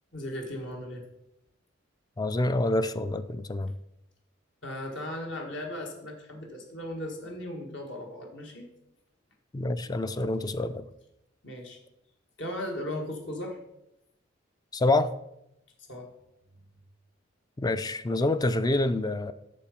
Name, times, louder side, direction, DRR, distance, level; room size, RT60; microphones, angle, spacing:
voice 1, 0.1-1.0 4.6-8.7 11.4-11.8 12.4-13.6 15.8-16.1, left 1 dB, 70° left, 1 dB, 1.7 m, -37 dB
voice 2, 2.2-3.7 9.5-10.9 14.7-15.1 17.6-19.3, left 2 dB, 20° left, 12 dB, 0.3 m, -27 dB
8.5 x 6.7 x 5.1 m, 0.83 s
head